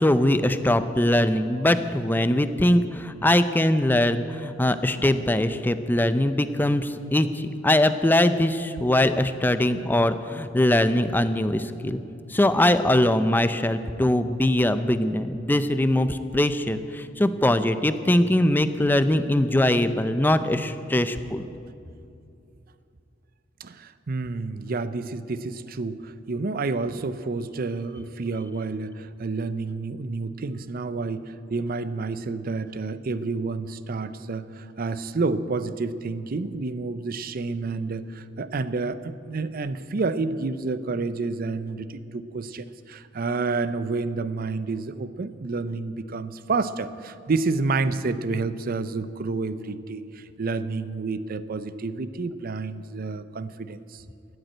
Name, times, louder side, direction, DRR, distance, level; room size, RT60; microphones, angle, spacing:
voice 1, 0.0-12.0 12.3-21.5, left 1 dB, 10° left, 11 dB, 0.5 m, -22 dB
voice 2, 23.6-54.0, right 3 dB, 50° right, 14 dB, 0.5 m, -29 dB
13.5 x 8.0 x 8.8 m, 2.6 s
head